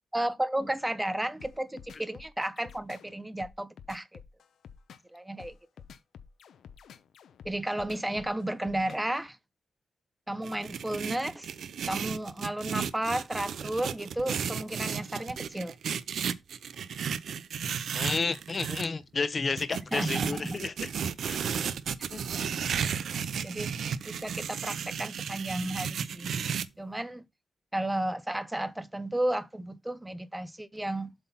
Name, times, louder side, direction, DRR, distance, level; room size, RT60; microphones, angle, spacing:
voice 1, 0.1-4.2 5.1-5.5 7.4-9.4 10.3-11.5 11.9-15.7 19.9-20.6 22.3-22.5 23.4-23.7 24.1-26.4 26.8-27.2 27.7-31.1, right 1 dB, 5° right, 0.6 m, -33 dB
sound 1, 1.4-9.2, left 7 dB, 80° left, 0.7 m, -50 dB
sound 2, 10.4-18.9 19.6-26.7, right 7 dB, 70° right, 0.5 m, -34 dB
voice 2, 17.9-20.9 21.2-21.4 22.1-22.2, left 4 dB, 30° left, 0.9 m, -31 dB
7.9 x 4.0 x 5.6 m
wide cardioid pair, 165°, 0 cm